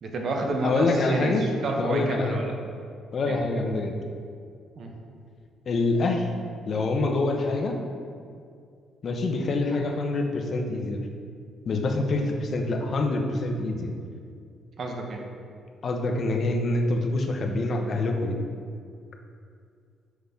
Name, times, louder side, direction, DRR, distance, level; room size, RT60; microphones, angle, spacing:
voice 1, 0.0-2.5 3.3-3.4 4.8-4.9 14.8-15.2, right 2 dB, 45° right, 2 dB, 0.8 m, -29 dB
voice 2, 0.6-1.4 1.8-2.4 3.1-3.9 5.7-6.3 6.7-7.8 9.0-11.0 11.7-13.9 15.8-18.4, left 2 dB, 40° left, 3 dB, 0.6 m, -26 dB
6.3 x 5.2 x 3.5 m, 2.3 s
cardioid pair, 150°, 0 cm